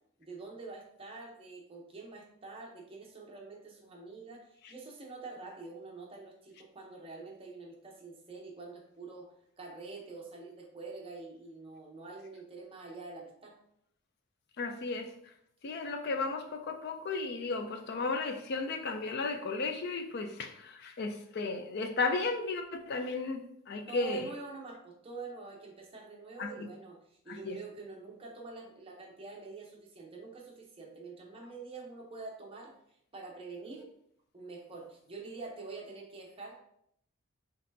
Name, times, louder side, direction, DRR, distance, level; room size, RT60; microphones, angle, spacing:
voice 1, 0.2-13.5 23.9-32.7 33.1-33.9 34.3-36.6, right 3 dB, 25° right, -1 dB, 0.8 m, -46 dB
voice 2, 14.6-15.1 15.6-24.3 26.4-26.7 27.3-27.6, left 3 dB, 50° left, 6 dB, 0.4 m, -34 dB
4.2 x 4.0 x 2.7 m, 0.72 s
head